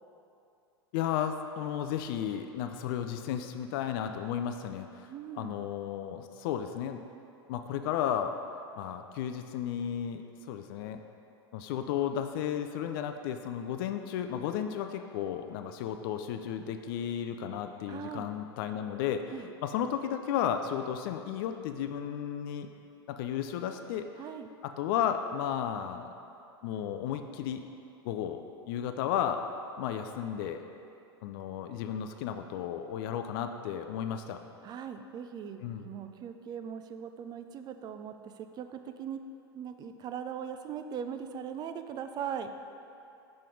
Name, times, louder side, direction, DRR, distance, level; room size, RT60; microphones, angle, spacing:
voice 1, 0.9-5.1 5.4-7.0 7.5-8.4 8.8-11.0 11.5-19.2 19.6-22.7 23.1-24.1 24.6-26.1 26.6-27.6 28.0-29.4 29.8-30.6 31.2-34.4 35.6-35.8, left 9 dB, 60° left, 7 dB, 0.4 m, -33 dB
voice 2, 5.1-5.6 17.9-18.3 19.3-19.5 24.2-24.5 34.6-39.2 39.5-42.5, right 8 dB, 30° right, 8 dB, 0.4 m, -40 dB
5.7 x 3.9 x 5.1 m, 2.6 s
hypercardioid pair, 90°, 14 cm